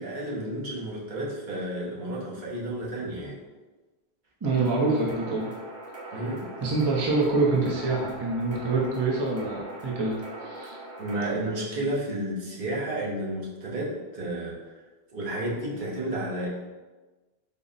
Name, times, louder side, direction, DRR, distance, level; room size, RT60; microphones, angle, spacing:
voice 1, 0.0-3.4 6.1-6.5 11.0-14.6 15.1-16.5, right 1 dB, 50° right, -5 dB, 0.9 m, -31 dB
voice 2, 4.4-5.5 6.6-10.8, right 3 dB, 35° right, -3 dB, 0.5 m, -26 dB
sound 1, 4.4-11.3, right 2 dB, 85° right, 1.0 m, -41 dB
3.7 x 2.0 x 3.9 m, 1.2 s
omnidirectional pair, 1.0 m